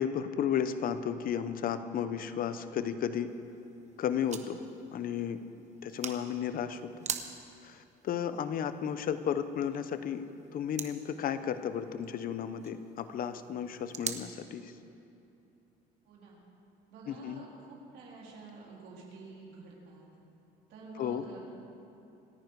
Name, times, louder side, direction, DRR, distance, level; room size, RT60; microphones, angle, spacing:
voice 1, 0.0-3.3 4.0-4.6 4.9-5.4 5.8-6.8 7.6-10.2 10.5-14.7 17.1-17.4 21.0-21.2, left 8 dB, 55° left, 11 dB, 0.9 m, -33 dB
sound 1, 3.3-14.2, right 7 dB, 45° right, 1.1 m, -45 dB
voice 2, 16.0-16.4 16.9-20.1 20.7-21.4, right 3 dB, 85° right, -4 dB, 3.8 m, -49 dB
27.5 x 9.7 x 4.8 m, 2.8 s
cardioid pair, 110°, 17 cm